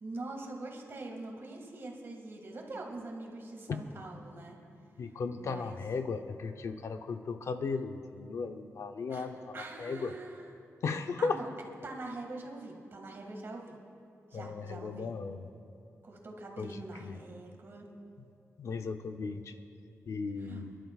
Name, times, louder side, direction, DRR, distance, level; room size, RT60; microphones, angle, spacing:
voice 1, 0.0-4.6 5.4-5.8 9.1-9.3 9.5-10.6 11.2-11.5 11.8-13.8 14.3-15.2 16.0-17.9 20.4-20.6, right 2 dB, 50° right, 1 dB, 2.0 m, -44 dB
voice 2, 5.0-10.1 10.8-11.4 14.3-15.4 16.6-17.2 18.6-19.5 20.1-20.8, left 4 dB, 65° left, 7 dB, 0.7 m, -36 dB
27.5 x 11.5 x 2.4 m, 2.6 s
wide cardioid pair, 150°, 5 cm